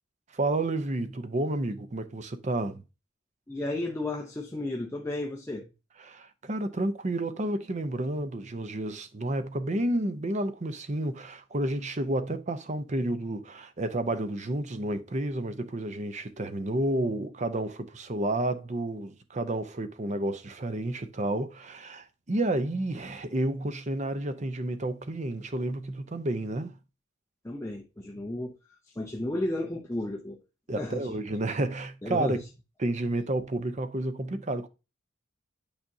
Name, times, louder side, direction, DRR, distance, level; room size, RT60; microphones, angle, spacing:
voice 1, 0.3-2.8 6.1-26.8 30.7-32.4 32.8-34.7, right 1 dB, 35° right, 0.6 m, -30 dB
voice 2, 3.5-5.7 27.4-28.5 28.9-30.4 30.7-31.2 32.0-32.4, left 1 dB, 15° left, 0.6 m, -33 dB
8.9 x 5.0 x 2.7 m
head